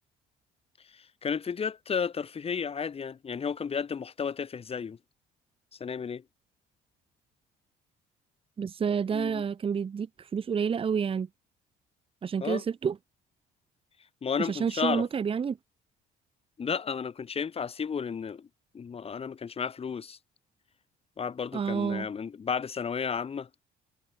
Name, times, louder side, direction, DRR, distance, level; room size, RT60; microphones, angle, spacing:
voice 1, 0.8-5.0 5.7-6.2 9.1-9.4 12.4-12.6 14.2-15.1 16.6-18.5 18.7-20.2 21.2-23.5, left 6 dB, 35° left, 4.9 m, -33 dB
voice 2, 8.6-11.3 12.2-13.0 14.4-15.6 21.5-22.1, right 6 dB, 35° right, 1.2 m, -29 dB
cardioid pair, 110°, 17 cm